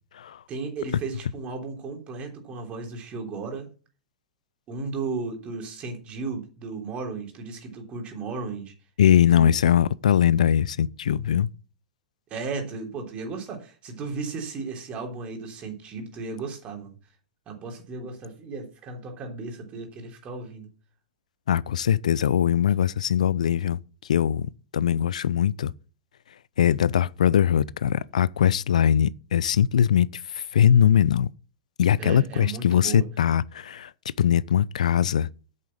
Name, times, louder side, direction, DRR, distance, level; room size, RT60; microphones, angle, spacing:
voice 1, 0.5-3.7 4.7-8.7 9.3-9.5 12.3-17.0 17.5-20.7 32.0-33.1, right 4 dB, 30° right, 3.3 m, -35 dB
voice 2, 9.0-11.5 21.5-23.8 24.1-25.7 26.6-31.3 31.8-33.9 34.2-35.3, left 9 dB, 75° left, 0.5 m, -21 dB
8.5 x 6.6 x 7.3 m
hypercardioid pair, 110°, 4 cm